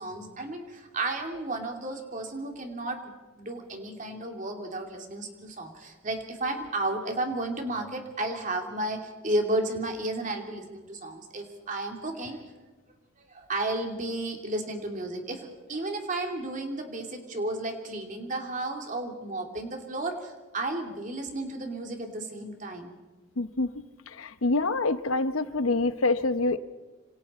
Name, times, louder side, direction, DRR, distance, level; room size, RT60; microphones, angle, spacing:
voice 1, 0.0-12.4 13.2-22.9, right 2 dB, 40° right, 3 dB, 2.7 m, -33 dB
voice 2, 23.4-23.7 24.2-26.6, left 3 dB, 85° left, 12 dB, 0.9 m, -26 dB
26.5 x 26.0 x 4.3 m, 1.3 s
head